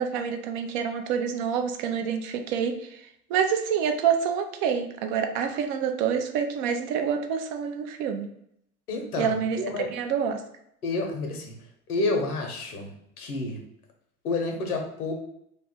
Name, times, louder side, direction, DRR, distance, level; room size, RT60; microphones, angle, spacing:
voice 1, 0.0-3.0 3.3-8.3 9.2-10.4, right 7 dB, 40° right, 6 dB, 0.4 m, -27 dB
voice 2, 8.9-9.9 10.8-11.5 11.9-12.9 13.2-13.6 14.2-15.1, left 2 dB, 75° left, 3 dB, 0.8 m, -29 dB
2.6 x 2.4 x 3.7 m, 0.74 s
figure-of-eight pair, 75°, 45 cm